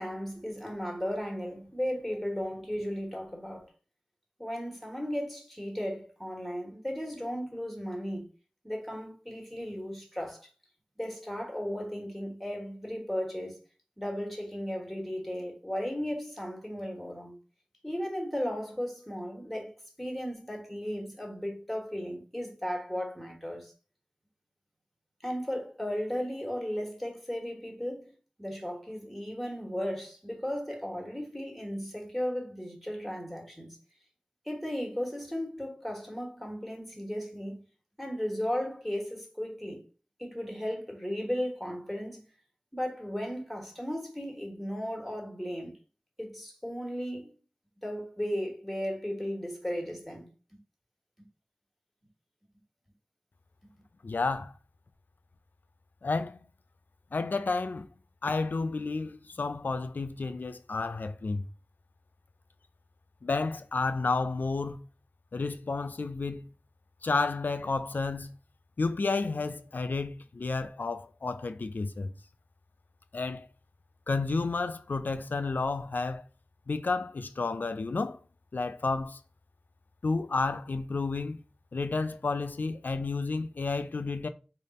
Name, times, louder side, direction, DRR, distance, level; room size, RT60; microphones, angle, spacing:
voice 1, 0.0-3.7 4.4-8.2 8.6-10.5 11.0-13.6 14.0-17.4 17.8-23.7 25.2-28.1 28.4-33.8 34.4-37.6 38.0-39.8 40.2-42.2 42.7-45.7 46.2-47.3 47.8-50.3 53.6-53.7, equal, ahead, 1.3 m, -35 dB
voice 2, 54.0-54.5 56.0-56.4 57.1-57.9 58.2-61.4 63.2-64.8 65.3-66.5 67.0-68.3 68.8-72.1 73.1-73.5 74.1-76.2 76.7-78.2 78.5-79.2 80.0-81.4 81.7-84.3, left 3 dB, 85° left, 0.3 m, -31 dB
3.3 x 2.4 x 4.1 m
wide cardioid pair, 50°, 3 cm